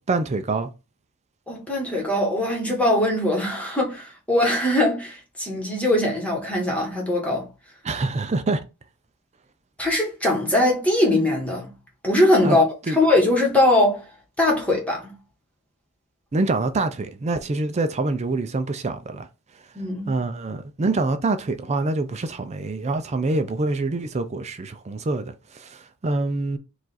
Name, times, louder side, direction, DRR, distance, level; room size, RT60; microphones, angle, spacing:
voice 1, 0.1-0.7 7.8-8.6 12.4-12.6 12.9-13.0 16.3-19.3 20.1-26.6, right 3 dB, 30° right, 0.4 m, -25 dB
voice 2, 1.5-7.4 9.8-11.7 12.0-14.0 14.4-15.1 19.7-20.2, left 1 dB, 5° left, 1.3 m, -21 dB
4.8 x 2.5 x 4.0 m
head